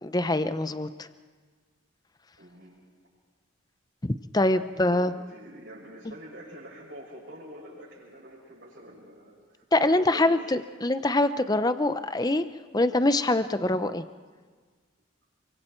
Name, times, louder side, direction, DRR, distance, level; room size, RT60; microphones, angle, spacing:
voice 1, 0.0-1.1 4.0-5.1 9.7-12.4 12.7-14.0, left 2 dB, 20° left, 11 dB, 0.6 m, -24 dB
voice 2, 2.4-2.8 4.7-10.5, equal, 60° right, -9 dB, 6.8 m, -46 dB
28.0 x 24.5 x 4.5 m, 1.5 s
head